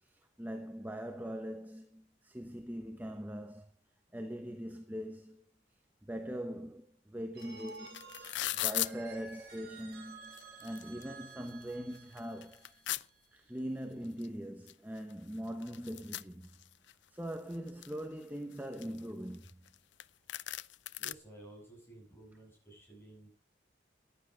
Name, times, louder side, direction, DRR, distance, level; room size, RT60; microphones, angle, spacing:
voice 1, 0.0-3.7 4.1-5.4 6.0-8.0 8.5-12.7 13.3-16.6 17.1-19.5, equal, 10° right, 0.9 m, -42 dB
Telephone, 7.3-13.1, right 4 dB, 55° right, 5.4 m, -52 dB
sound 1, 7.4-7.5 7.7-8.9 9.8-9.9 10.2-11.0 11.5-11.6 11.9-13.0 14.2-14.3 14.7-14.8 15.0-16.9 17.3-18.0 18.5-19.7 20.0-20.1 20.3-21.1, left 15 dB, 70° left, 0.5 m, -37 dB
voice 2, 21.0-23.3, right 2 dB, 10° left, 7.8 m, -54 dB
14.5 x 10.5 x 5.1 m
head